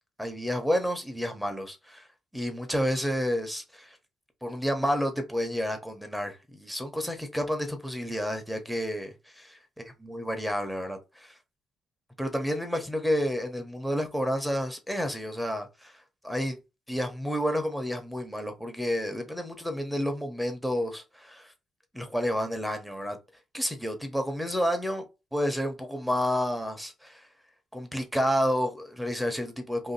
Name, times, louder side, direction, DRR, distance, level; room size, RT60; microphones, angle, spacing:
voice 1, 0.2-2.1 2.3-4.0 4.4-9.4 10.0-11.3 12.2-16.6 16.9-21.5 21.9-23.2 23.5-25.0 25.3-27.3 27.7-29.9, equal, ahead, 0.9 m, -30 dB
2.8 x 2.5 x 4.0 m
cardioid pair, 90°, 0 cm